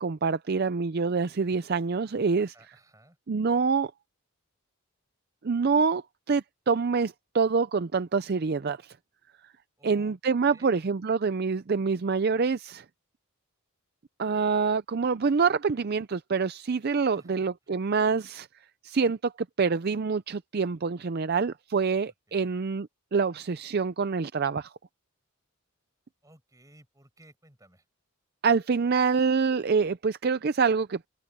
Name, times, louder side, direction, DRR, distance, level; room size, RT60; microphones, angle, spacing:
voice 1, 0.0-2.5 3.3-3.9 5.4-8.9 9.8-12.8 14.2-18.5 18.8-19.3 19.6-24.7 28.4-31.1, right 5 dB, 45° right, 0.5 m, -26 dB
voice 2, 2.4-3.2 9.8-10.8 17.0-17.7 22.1-22.6 26.2-27.9, right 1 dB, 15° right, 7.4 m, -57 dB
head